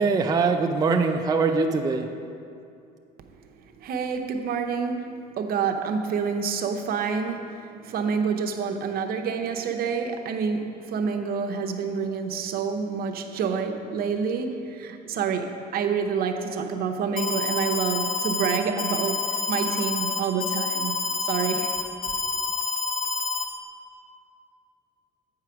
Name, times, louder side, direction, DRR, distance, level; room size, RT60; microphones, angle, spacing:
voice 1, 0.0-2.1, right 4 dB, 20° right, 4 dB, 0.4 m, -22 dB
voice 2, 3.8-20.9 21.2-21.7, right 6 dB, 65° right, 5 dB, 0.7 m, -28 dB
Alarm, 17.2-23.4, left 4 dB, 50° left, 0.7 m, -28 dB
8.4 x 4.8 x 5.8 m, 2.5 s
cardioid pair, 110°, 17 cm